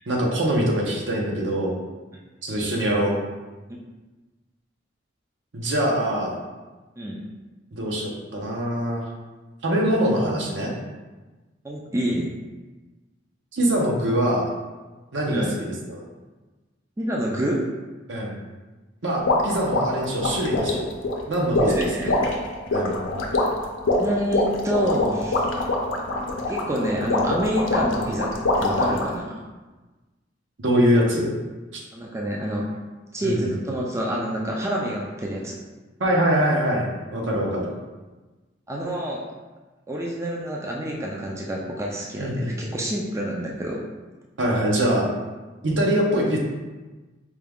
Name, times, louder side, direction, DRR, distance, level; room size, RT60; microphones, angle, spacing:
voice 1, 0.1-1.8 2.4-3.1 5.5-6.4 7.7-9.0 9.6-10.7 13.5-14.5 15.1-16.0 18.1-18.3 19.0-20.9 21.3-21.7 22.7-22.9 30.6-31.3 31.7-31.8 33.2-33.5 36.0-37.7 42.2-42.7 44.4-45.1 45.6-46.4, equal, 70° right, -2 dB, 0.8 m, -23 dB
voice 2, 11.6-12.3 15.3-15.6 17.0-17.6 21.7-22.3 24.0-25.5 26.5-29.3 31.9-32.7 33.1-35.6 38.7-39.2 39.9-43.8, equal, 15° right, -2 dB, 0.4 m, -27 dB
sound 1, 19.3-29.2, left 2 dB, 90° left, 0.6 m, -24 dB
4.6 x 2.3 x 3.5 m, 1.2 s
head